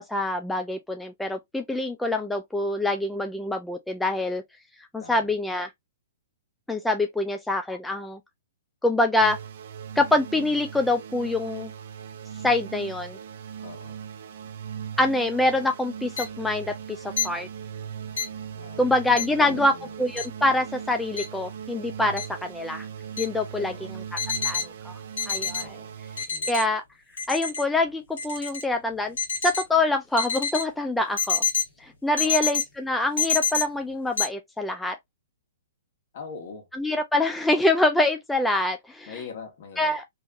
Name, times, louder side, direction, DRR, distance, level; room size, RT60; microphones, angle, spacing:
voice 1, 0.0-4.4 4.9-5.7 6.7-8.2 8.8-9.4 10.0-11.7 12.4-13.2 15.0-16.7 17.2-17.5 18.8-19.7 20.0-22.9 23.2-24.0 24.4-24.9 25.3-25.8 26.5-26.8 27.3-29.2 29.4-31.4 31.8-35.0 36.7-39.2 39.8-40.1, left 2 dB, 5° left, 0.4 m, -25 dB
sound 1, 9.2-26.2, right 8 dB, 55° right, 0.6 m, -39 dB
voice 2, 13.6-14.0 18.5-18.9 19.4-19.9 23.6-24.0 25.6-25.9 26.3-26.5 32.2-32.5 36.1-36.7 39.1-39.9, left 5 dB, 55° left, 1.5 m, -41 dB
sound 2, 16.2-16.3 17.2-17.3 18.2-18.3 19.2-19.3 20.2-20.3 21.2-21.3 22.2-22.3 23.2-23.3 24.2-24.6 25.2-25.6 26.2-26.6 27.2-27.6 28.2-28.6 29.2-29.6 30.2-30.6 31.2-31.6 32.2-32.6 33.2-33.6 34.2-34.3, left 6 dB, 70° left, 1.4 m, -26 dB
3.4 x 2.9 x 2.5 m
figure-of-eight pair, 120°, 0 cm